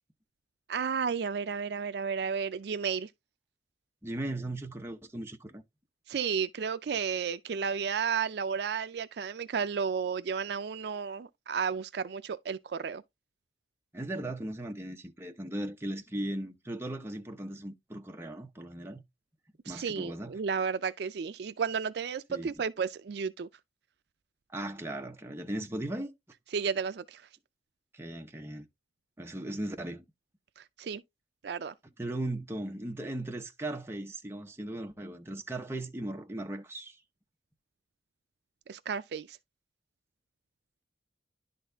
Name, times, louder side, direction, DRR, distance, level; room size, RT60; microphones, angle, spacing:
voice 1, 0.7-3.1 6.1-13.0 19.7-23.5 26.5-27.2 30.6-31.0 31.4-31.7 38.7-39.4, right 6 dB, 60° right, 0.4 m, -32 dB
voice 2, 4.0-5.6 13.9-19.0 19.7-20.3 22.3-22.5 24.5-26.1 27.9-28.7 29.2-30.0 32.0-37.0, right 1 dB, 15° right, 0.8 m, -37 dB
11.0 x 4.0 x 3.4 m
head